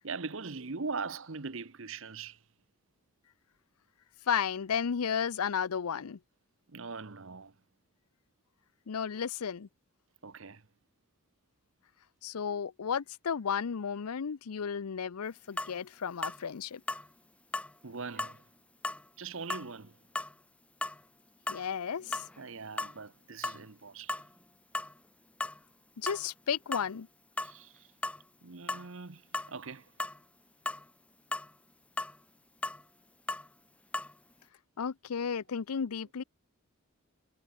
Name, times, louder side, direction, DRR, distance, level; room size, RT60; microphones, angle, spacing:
voice 1, 0.0-2.4 6.7-7.5 10.2-10.7 17.8-18.4 19.2-20.0 22.4-24.2 27.4-27.9 28.4-29.9, right 4 dB, 60° right, 1.0 m, -41 dB
voice 2, 4.3-6.2 8.9-9.7 12.2-16.8 21.5-22.2 26.0-27.1 34.8-36.2, left 7 dB, 85° left, 0.6 m, -33 dB
sound 1, 15.6-15.7 16.2-16.4 16.9-17.1 17.5-17.7 18.2-18.4 18.8-19.0 19.5-19.7 20.1-20.3 20.8-21.0 21.5-21.6 22.0-22.4 22.8-23.0 23.4-23.6 24.1-24.3 24.7-24.9 25.4-25.6 26.1-26.2 26.7-26.9 27.4-27.5 28.0-28.2 28.7-28.9 29.3-29.5 30.0-30.2 30.7-30.8 31.3-31.5 32.0-32.2 32.6-32.8 33.3-33.5 33.9-34.1, left 2 dB, 5° left, 0.5 m, -35 dB
head